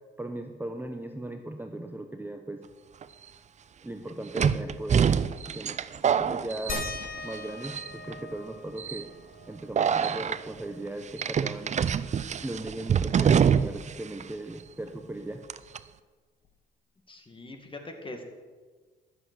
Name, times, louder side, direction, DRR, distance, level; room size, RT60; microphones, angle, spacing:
voice 1, 0.2-2.6 3.8-5.1 5.4-5.8 6.0-6.9 7.2-9.1 9.5-11.8 12.4-15.4, right 1 dB, 10° right, 6 dB, 0.8 m, -38 dB
sound 1, 3.0-3.1 4.4-7.4 7.6-8.1 8.8-9.0 9.8-10.4 11.2-13.9 14.2-14.3 15.5-15.8, right 7 dB, 35° right, 0.5 m, -25 dB
sound 2, 6.7-11.8 12.2-12.3 12.6-14.4 15.6-15.7 16.4-16.5, left 4 dB, 45° left, 1.5 m, -42 dB
voice 2, 17.1-18.2, left 2 dB, 25° left, 4 dB, 2.1 m, -42 dB
12.5 x 8.0 x 6.2 m, 1.4 s
cardioid pair, 90°, 20 cm